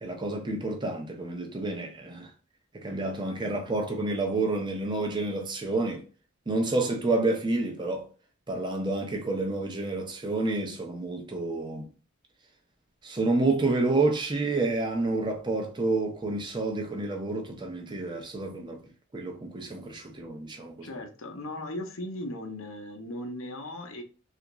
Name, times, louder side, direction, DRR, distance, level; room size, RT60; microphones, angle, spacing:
voice 1, 0.0-2.3 2.7-6.0 6.5-8.0 8.5-11.8 13.0-18.8 19.1-20.9, right 2 dB, 20° right, 0.5 m, -29 dB
voice 2, 20.8-24.0, left 1 dB, 75° left, 0.7 m, -37 dB
3.4 x 2.5 x 2.9 m
head